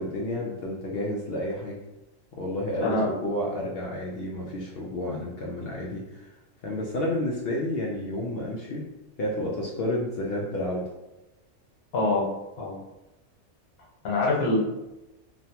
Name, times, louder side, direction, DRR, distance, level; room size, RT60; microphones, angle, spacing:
voice 1, 0.0-1.8 2.4-6.3 6.6-8.9 9.2-10.9, left 1 dB, 65° left, -3 dB, 0.6 m, -30 dB
voice 2, 11.9-12.2 12.6-12.8 14.0-14.6, left 2 dB, 90° left, -4 dB, 1.3 m, -24 dB
3.2 x 2.1 x 2.8 m, 0.99 s
omnidirectional pair, 1.4 m